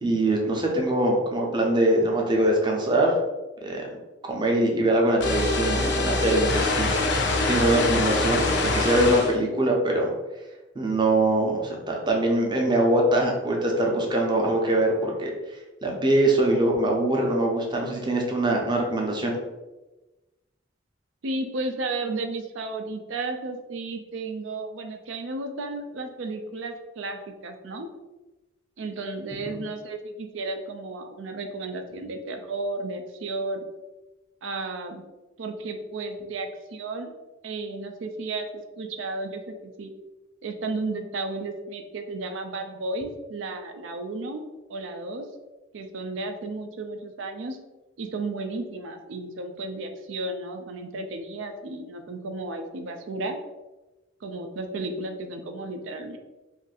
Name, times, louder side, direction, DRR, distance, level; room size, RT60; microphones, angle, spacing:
voice 1, 0.0-3.2 3.6-3.8 4.2-10.1 10.7-19.3 29.4-29.6, right 1 dB, 25° right, -1 dB, 0.6 m, -23 dB
sound 1, 5.2-9.3, left 2 dB, 60° left, 0.5 m, -24 dB
voice 2, 21.2-27.9 28.8-33.7 34.4-35.0 35.4-37.1 37.4-39.9 40.4-45.3 45.7-47.6 48.0-53.4 54.2-56.2, right 2 dB, 75° right, 6 dB, 0.5 m, -33 dB
2.5 x 2.5 x 3.9 m, 1.1 s
head